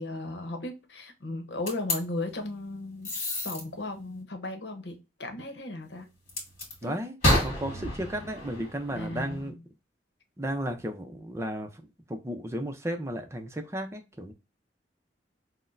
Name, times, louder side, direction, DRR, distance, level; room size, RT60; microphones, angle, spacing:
voice 1, 0.0-6.1 6.8-7.0 7.4-7.8 8.9-9.6, left 2 dB, 75° left, 0.9 m, -36 dB
sound 1, 1.7-2.0 3.0-3.6 6.3-6.7 7.2-9.5, left 1 dB, 40° left, 1.9 m, -29 dB
voice 2, 6.8-7.2 7.4-9.5 10.4-11.8 12.1-14.3, right 1 dB, 15° right, 0.6 m, -34 dB
5.8 x 2.1 x 2.5 m
head